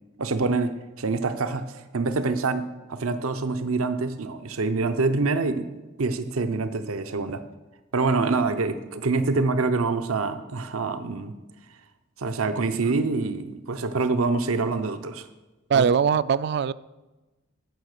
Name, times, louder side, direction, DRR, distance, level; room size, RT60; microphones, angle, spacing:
voice 1, 0.2-0.7 1.0-5.7 6.0-7.4 7.9-11.3 12.2-15.3 15.7-15.9, right 3 dB, 90° right, 10 dB, 0.7 m, -26 dB
voice 2, 15.7-16.7, right 6 dB, 50° right, 18 dB, 0.3 m, -21 dB
15.5 x 6.2 x 6.6 m, 1.1 s
head